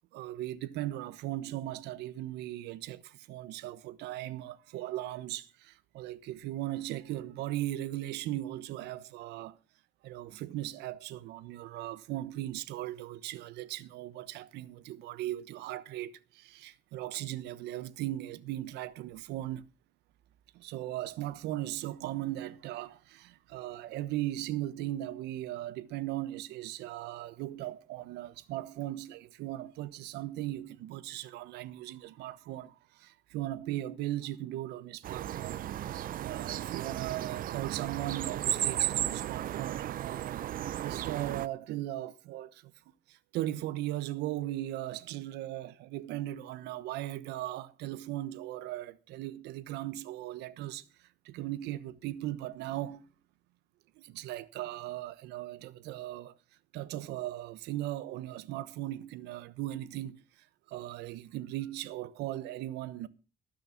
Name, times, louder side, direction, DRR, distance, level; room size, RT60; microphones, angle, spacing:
voice 1, 0.1-9.6 10.0-19.6 20.5-35.6 35.9-40.4 40.8-42.7 43.1-50.8 51.2-53.0 54.0-56.3 56.7-60.2 60.7-63.1, right 14 dB, 85° right, 1.1 m, -38 dB
sound 1, 35.0-41.5, right 12 dB, 55° right, 0.7 m, -34 dB
18.5 x 6.6 x 5.8 m
cardioid pair, 110°, 17 cm